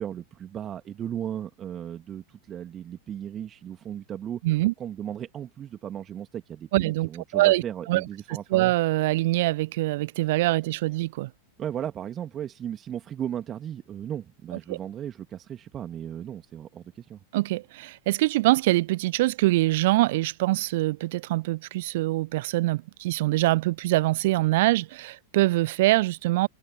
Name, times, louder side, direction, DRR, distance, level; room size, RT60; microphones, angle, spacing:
voice 1, 0.0-4.4 4.8-8.7 11.6-17.2, right 10 dB, 25° right, 2.2 m, -36 dB
voice 2, 4.4-4.7 6.7-7.6 7.9-8.0 8.5-11.3 14.7-14.8 17.3-26.5, right 18 dB, 50° right, 0.9 m, -24 dB
open air
figure-of-eight pair, 90°, 0 cm